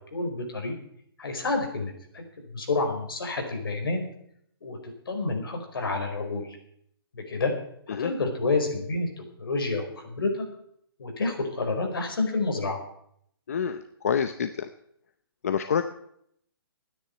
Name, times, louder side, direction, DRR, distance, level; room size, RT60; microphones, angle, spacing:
voice 1, 0.1-0.7 1.2-2.2 2.5-4.0 4.6-4.8 5.1-6.5 7.1-7.5 7.9-9.1 9.4-10.4 11.0-12.8, left 3 dB, 65° left, 3 dB, 4.8 m, -29 dB
voice 2, 13.5-14.7 15.4-15.8, left 7 dB, 40° left, 10 dB, 0.6 m, -27 dB
13.0 x 9.8 x 8.7 m, 0.71 s
hypercardioid pair, 175°, 13 cm